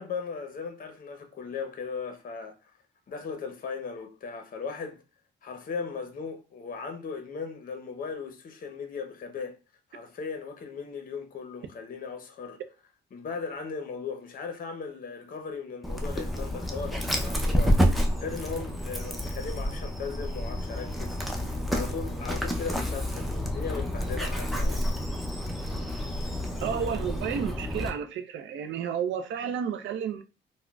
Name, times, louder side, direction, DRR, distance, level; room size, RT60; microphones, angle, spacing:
voice 1, 0.0-2.5 3.1-5.0 5.4-9.6 9.9-12.6 13.1-24.8 29.4-29.5, left 5 dB, 45° left, 0.7 m, -37 dB
Dog, 15.8-27.9, equal, ahead, 0.5 m, -29 dB
voice 2, 26.6-30.2, right 8 dB, 70° right, 0.5 m, -31 dB
3.6 x 2.1 x 2.2 m
cardioid pair, 90°, 20 cm